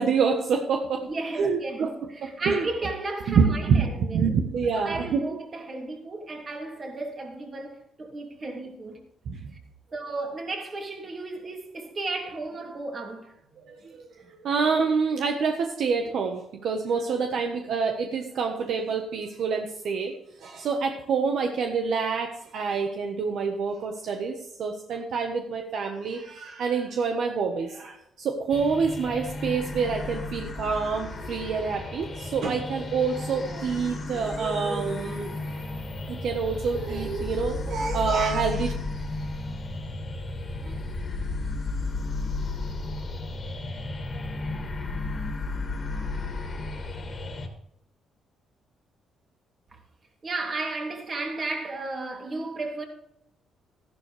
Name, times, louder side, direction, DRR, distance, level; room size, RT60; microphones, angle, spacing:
voice 1, 0.0-1.0 1.4-2.7 3.3-5.2 9.2-9.5 13.6-35.3 36.1-38.7 40.6-40.7, right 5 dB, 70° right, 1.3 m, -27 dB
voice 2, 1.0-4.3 4.7-9.0 9.9-13.4 49.7-49.8 50.2-52.8, right 2 dB, 40° right, 2.9 m, -34 dB
sound 1, 28.5-47.5, left 2 dB, 40° left, 2.2 m, -33 dB
13.0 x 11.5 x 3.4 m
cardioid pair, 90°, 0 cm